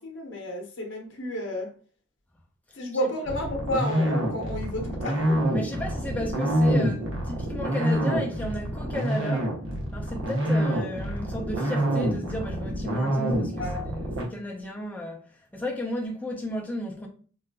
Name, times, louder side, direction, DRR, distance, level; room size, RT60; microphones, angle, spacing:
voice 1, 0.0-1.7 2.7-5.4 13.6-13.9, left 1 dB, 60° left, 0.7 m, -31 dB
sound 1, 3.3-14.2, right 1 dB, 75° right, 0.8 m, -26 dB
voice 2, 5.5-9.5 9.9-15.3 15.5-17.1, left 1 dB, 10° left, 0.4 m, -34 dB
3.8 x 2.3 x 2.2 m
head